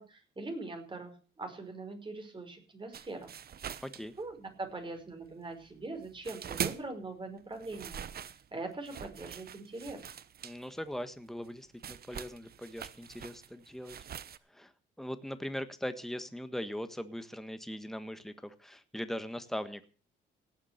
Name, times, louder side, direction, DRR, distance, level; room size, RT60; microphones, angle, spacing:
voice 1, 0.0-3.3 4.2-10.1, right 2 dB, 25° right, 5 dB, 5.2 m, -42 dB
sound 1, 2.9-4.7 5.0-7.0 7.4-14.4, right 8 dB, 50° right, 1.0 m, -43 dB
voice 2, 3.8-4.1 10.4-14.0 14.5-14.7 15.0-19.8, equal, ahead, 11 dB, 1.5 m, -40 dB
18.0 x 7.4 x 6.6 m, 0.39 s
cardioid pair, 90°, 20 cm